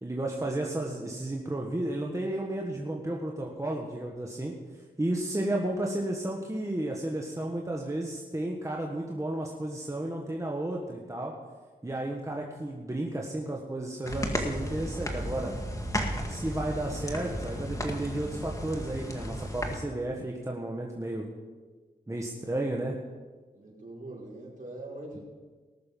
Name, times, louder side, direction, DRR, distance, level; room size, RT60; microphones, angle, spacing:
voice 1, 0.0-4.5 5.0-11.3 11.8-15.5 16.3-21.3 22.1-23.0, right 1 dB, 20° right, -1 dB, 1.5 m, -33 dB
sound 1, 14.1-19.8, equal, 20° left, 1.9 m, -34 dB
voice 2, 23.5-25.2, right 2 dB, 50° right, -3 dB, 4.8 m, -42 dB
19.0 x 6.8 x 5.4 m, 1.4 s
cardioid pair, 65°, 17 cm